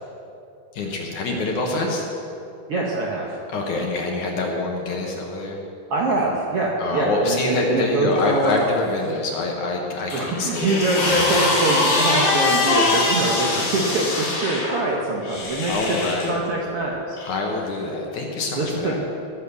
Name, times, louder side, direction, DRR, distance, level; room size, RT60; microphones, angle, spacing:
voice 1, 0.7-2.1 3.5-5.6 6.8-11.2 12.9-13.7 15.7-16.4 17.2-19.0, left 2 dB, 60° left, 0 dB, 2.3 m, -26 dB
voice 2, 2.7-3.4 5.9-8.6 10.1-15.7 16.2-17.2 18.5-19.0, right 2 dB, 70° right, -2 dB, 1.4 m, -24 dB
sound 1, 8.2-9.0 9.3-15.1, left 2 dB, 35° left, 2.1 m, -30 dB
sound 2, 10.1-14.4 15.2-16.3 17.2-17.3, left 2 dB, 85° left, 5.7 m, -23 dB
19.5 x 7.3 x 6.8 m, 2.7 s
omnidirectional pair, 4.4 m